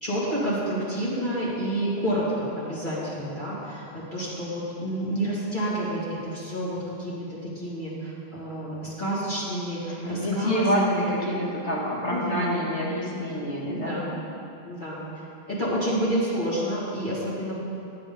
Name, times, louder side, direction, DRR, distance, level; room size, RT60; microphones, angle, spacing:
voice 1, 0.0-11.1 12.1-12.7 13.6-14.1 14.6-15.0 15.5-17.6, right 1 dB, 45° left, -8 dB, 2.8 m, -29 dB
voice 2, 10.0-14.0, equal, 80° left, -5 dB, 2.4 m, -27 dB
10.5 x 8.9 x 5.4 m, 2.6 s
omnidirectional pair, 1.2 m